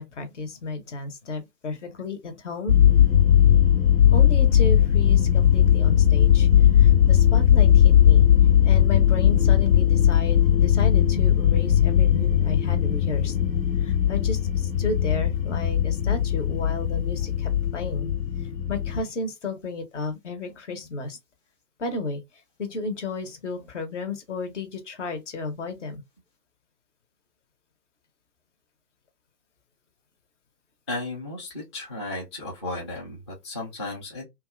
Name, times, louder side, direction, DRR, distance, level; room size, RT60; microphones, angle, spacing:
voice 1, 0.0-2.8 4.1-8.3 8.6-13.4 13.8-18.1 18.7-21.2 21.8-22.2 22.6-26.0, left 3 dB, 45° left, 0.8 m, -33 dB
sound 1, 2.7-19.0, left 10 dB, 80° left, 0.8 m, -18 dB
voice 2, 30.9-34.2, left 2 dB, 20° left, 0.5 m, -34 dB
2.6 x 2.3 x 2.3 m
figure-of-eight pair, 125°, 49 cm